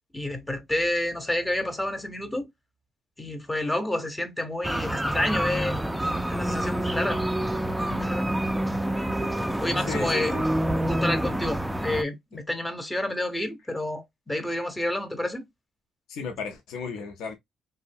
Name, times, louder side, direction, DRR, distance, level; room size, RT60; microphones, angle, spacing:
voice 1, 0.1-2.5 3.2-5.8 6.3-7.2 7.8-8.3 9.6-10.3 10.8-15.5, left 1 dB, 15° left, 0.7 m, -29 dB
sound 1, 4.6-12.0, right 1 dB, 5° right, 0.3 m, -27 dB
voice 2, 9.9-10.4 16.1-17.3, left 5 dB, 85° left, 0.5 m, -34 dB
2.6 x 2.1 x 2.5 m
cardioid pair, 90°, 0 cm